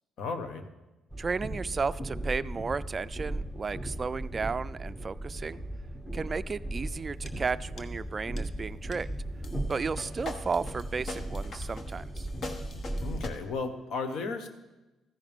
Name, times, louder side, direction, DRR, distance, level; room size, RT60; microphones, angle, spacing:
voice 1, 0.2-0.7 13.0-14.5, left 4 dB, 75° left, 7 dB, 1.2 m, -34 dB
Train, 1.1-13.3, right 1 dB, 10° left, 1.2 m, -37 dB
voice 2, 1.2-5.6 6.1-9.1 9.7-12.3, right 4 dB, 35° right, 15 dB, 0.3 m, -33 dB
sound 1, 7.3-7.4 7.8-8.0 8.4-8.5 8.9-9.0 9.4-13.3, left 2 dB, 50° left, 1.2 m, -42 dB
14.5 x 10.5 x 3.6 m, 1.1 s
cardioid pair, 90°, 0 cm